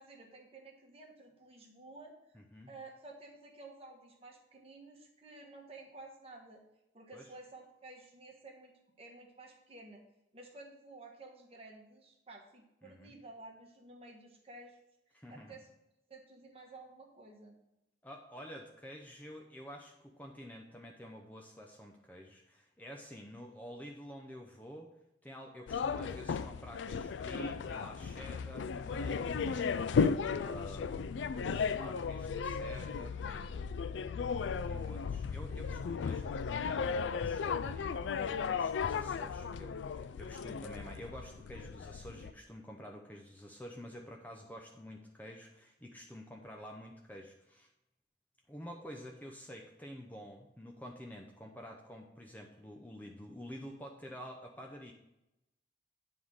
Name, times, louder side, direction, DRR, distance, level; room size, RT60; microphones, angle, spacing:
voice 1, 0.0-2.1 2.7-6.6 6.9-8.7 9.0-10.0 10.3-14.8 15.3-15.7 16.1-17.6, right 2 dB, 35° right, -1 dB, 1.4 m, -53 dB
voice 2, 2.3-2.7 7.1-7.4 12.8-13.1 15.1-15.6 18.0-24.9 25.2-29.9 30.3-33.5 34.6-47.7 48.5-54.9, equal, 10° left, 1 dB, 0.6 m, -49 dB
sound 1, 25.7-42.3, left 5 dB, 85° left, 0.4 m, -35 dB
9.9 x 3.7 x 6.3 m, 0.89 s
head